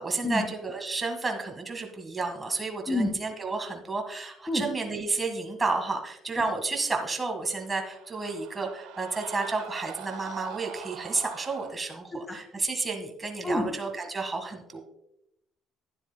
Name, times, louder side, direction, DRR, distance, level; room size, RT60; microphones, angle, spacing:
voice 1, 0.0-14.8, right 3 dB, 25° right, 4 dB, 1.7 m, -31 dB
voice 2, 2.9-3.2 4.5-4.7 12.1-12.4 13.4-13.7, left 1 dB, 20° left, 3 dB, 1.6 m, -28 dB
Screaming, 7.3-11.7, right 11 dB, 80° right, 0.5 m, -43 dB
12.0 x 10.0 x 2.3 m, 0.81 s
supercardioid pair, 90°, 0 cm